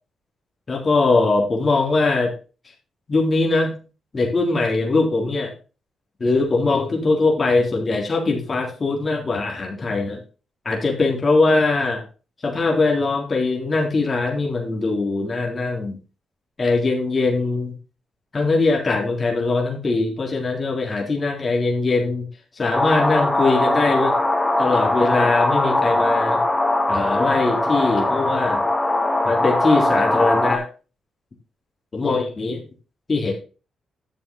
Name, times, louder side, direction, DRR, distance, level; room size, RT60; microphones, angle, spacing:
voice 1, 0.7-2.3 3.1-3.7 4.1-5.5 6.2-10.2 10.7-12.0 12.4-16.0 16.6-17.7 18.3-22.3 22.6-24.1 24.6-26.4 26.9-28.6 29.2-30.6 31.9-32.6 33.1-33.3, left 3 dB, 40° left, -1 dB, 3.6 m, -21 dB
sound 1, 22.7-30.6, left 1 dB, 15° left, 2.1 m, -20 dB
10.5 x 7.2 x 3.8 m, 0.34 s
supercardioid pair, 60°, 0 cm